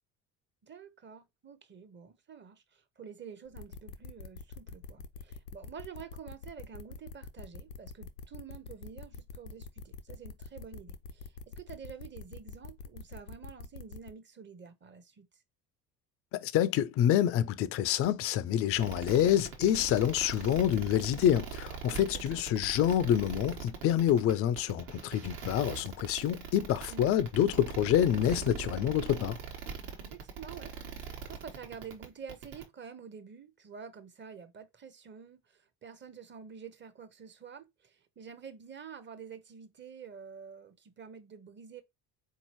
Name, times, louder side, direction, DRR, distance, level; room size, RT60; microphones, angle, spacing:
voice 1, 0.6-15.3 22.1-22.4 26.9-27.1 30.0-41.8, right 6 dB, 25° right, 0.7 m, -48 dB
sound 1, 3.5-14.1, left 5 dB, 90° left, 0.6 m, -45 dB
voice 2, 16.3-29.4, left 10 dB, 35° left, 0.4 m, -27 dB
sound 2, 18.8-32.6, right 6 dB, 55° right, 1.2 m, -41 dB
4.0 x 2.8 x 2.9 m
hypercardioid pair, 60°, 46 cm